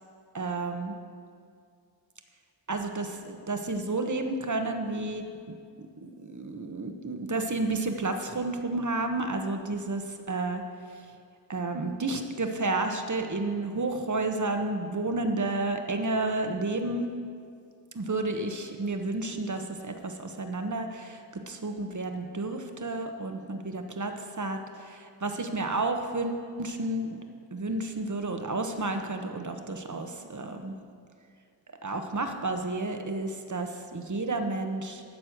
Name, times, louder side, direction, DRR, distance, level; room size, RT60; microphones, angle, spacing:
voice 1, 0.3-1.0 2.7-5.2 5.8-10.6 10.9-11.1 11.5-17.1 17.9-27.2 27.5-30.7 31.8-35.0, right 2 dB, 40° right, 6 dB, 1.1 m, -31 dB
12.5 x 4.4 x 8.0 m, 2.3 s
cardioid pair, 45°, 44 cm